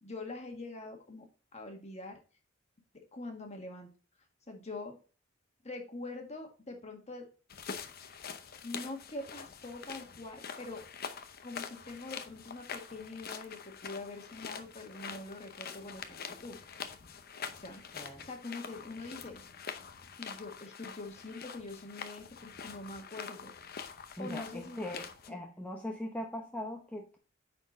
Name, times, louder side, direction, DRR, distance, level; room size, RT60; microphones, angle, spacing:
voice 1, 0.0-2.2 2.9-3.9 4.5-4.9 5.6-7.3 8.6-10.8 11.4-16.6 17.6-19.4 20.2-23.5 24.2-24.8 25.3-25.4, left 2 dB, 35° left, 3 dB, 1.6 m, -44 dB
sound 1, 7.5-25.3, left 6 dB, 50° left, 0.7 m, -45 dB
voice 2, 17.9-18.3 24.2-27.2, left 1 dB, 5° left, 0 dB, 0.8 m, -40 dB
9.2 x 4.4 x 4.0 m, 0.36 s
head